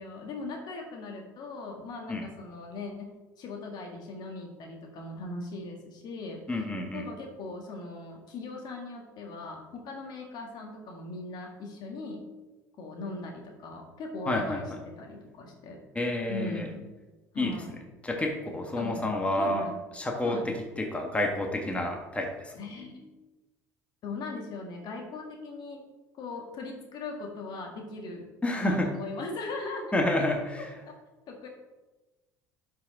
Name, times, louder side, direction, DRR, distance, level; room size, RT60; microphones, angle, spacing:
voice 1, 0.0-6.4 6.9-12.2 12.8-15.8 16.3-16.9 17.3-17.7 18.8-19.7 20.2-20.4 22.5-23.1 24.0-25.8 26.1-30.0 30.9-31.0 31.3-31.5, left 3 dB, 55° left, 2 dB, 1.8 m, -39 dB
voice 2, 6.5-7.0 14.3-14.6 15.9-16.7 17.3-17.6 18.0-19.6 19.9-22.5 28.4-28.9 29.9-30.7, left 1 dB, 15° left, 2 dB, 1.6 m, -29 dB
11.0 x 5.2 x 3.8 m, 1.1 s
hypercardioid pair, 70°, 9 cm